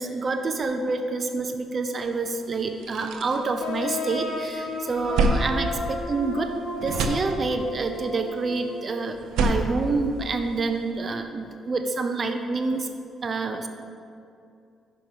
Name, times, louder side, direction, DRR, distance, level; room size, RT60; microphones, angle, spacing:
voice 1, 0.0-6.6 6.8-12.9 13.2-13.7, right 3 dB, 40° right, 7 dB, 0.6 m, -27 dB
sound 1, 2.2-2.3 2.6-4.3 4.7-6.5 6.8-7.8 9.1-10.8, right 3 dB, 85° right, 0.6 m, -28 dB
sound 2, 3.6-9.1, left 3 dB, 90° left, 0.9 m, -34 dB
5.8 x 5.1 x 6.1 m, 2.4 s
cardioid pair, 90°, 0 cm